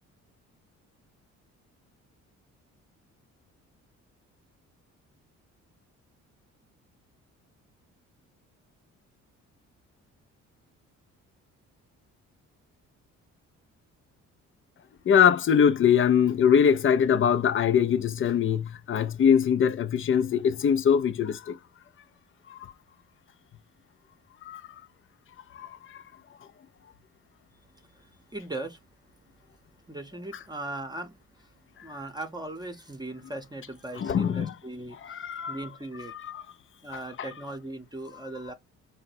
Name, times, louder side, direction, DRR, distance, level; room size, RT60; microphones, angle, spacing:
voice 1, 15.1-21.6 22.5-22.7 24.4-24.6 25.5-26.0 34.0-34.5 35.0-35.6 36.2-36.4 37.2-37.3, left 8 dB, 45° left, 0.5 m, -23 dB
voice 2, 27.7-28.8 29.9-31.5 31.8-36.1 36.8-38.5, right 2 dB, 15° right, 0.8 m, -39 dB
3.9 x 2.1 x 4.1 m
cardioid pair, 90°, 30 cm